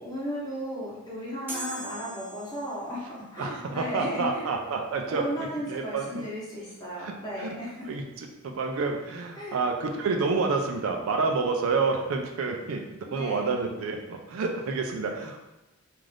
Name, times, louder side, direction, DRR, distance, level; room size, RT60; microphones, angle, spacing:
voice 1, 0.0-4.5 5.1-7.9 9.4-9.6 13.1-13.6, equal, 20° left, -7 dB, 0.9 m, -35 dB
sound 1, 1.5-3.0, right 1 dB, 10° right, 0.5 m, -39 dB
voice 2, 3.4-6.2 7.0-7.1 7.4-7.5 7.9-15.4, right 4 dB, 75° right, 3 dB, 0.4 m, -29 dB
2.5 x 2.4 x 3.3 m, 0.97 s
head